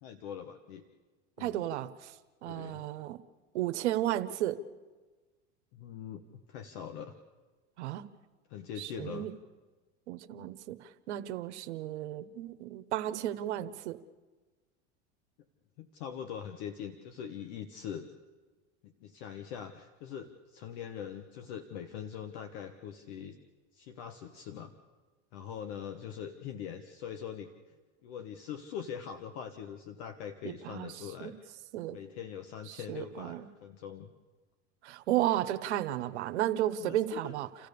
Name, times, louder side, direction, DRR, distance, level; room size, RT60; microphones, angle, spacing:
voice 1, 0.0-0.8 1.4-1.7 2.4-2.9 5.7-7.2 8.5-9.3 15.8-18.1 18.8-23.4 23.7-24.7 25.3-27.5 28.0-31.5 31.9-34.1 36.8-37.4, left 8 dB, 70° left, 7 dB, 1.4 m, -42 dB
voice 2, 1.4-2.1 2.4-3.2 3.5-4.6 7.8-8.1 8.8-9.3 10.1-14.0 30.4-30.9 31.2-31.3 31.7-32.0 32.7-33.4 34.8-37.5, right 13 dB, 90° right, 11 dB, 1.1 m, -33 dB
29.5 x 14.5 x 6.9 m, 1.3 s
supercardioid pair, 110°, 33 cm